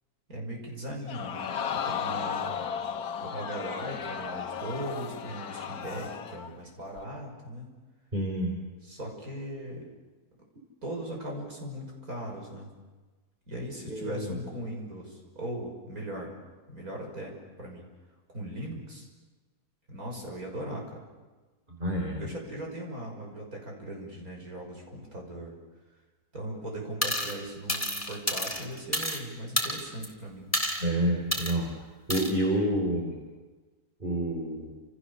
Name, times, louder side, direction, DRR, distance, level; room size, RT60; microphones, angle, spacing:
voice 1, 0.3-2.5 3.2-7.7 8.8-9.9 10.8-12.7 13.5-16.3 16.7-17.8 18.3-19.1 19.9-20.8 22.2-25.6 26.3-30.5, right 1 dB, 65° right, 0 dB, 6.7 m, -39 dB
Crowd, 1.1-6.5 7.0-7.1, left 7 dB, 75° left, 1.5 m, -34 dB
voice 2, 8.1-8.5 13.9-14.4 21.8-22.2 30.8-31.7 32.1-33.2 34.0-34.7, right 1 dB, 30° right, 0 dB, 4.6 m, -28 dB
sound 1, 27.0-27.4 27.7-29.2 29.6-30.1 30.5-30.8 31.3-31.5 32.1-32.3, equal, 10° left, 3.4 m, -29 dB
29.5 x 28.5 x 7.1 m, 1.3 s
omnidirectional pair, 1.6 m